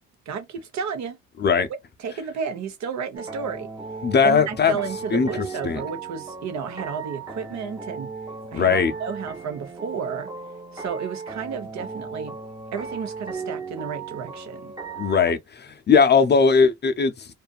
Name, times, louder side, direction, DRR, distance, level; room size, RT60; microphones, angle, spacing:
voice 1, 0.3-1.2 2.0-3.7 4.2-8.1 8.5-10.3 10.7-12.4 12.7-14.7, right 6 dB, 65° right, 0.8 m, -32 dB
sound 1, 3.1-15.3, right 4 dB, 15° right, 0.7 m, -36 dB
voice 2, 4.0-4.7 5.1-5.8 8.5-8.9 15.0-17.3, left 5 dB, 35° left, 0.5 m, -19 dB
2.6 x 2.4 x 2.3 m
cardioid pair, 90°, 30 cm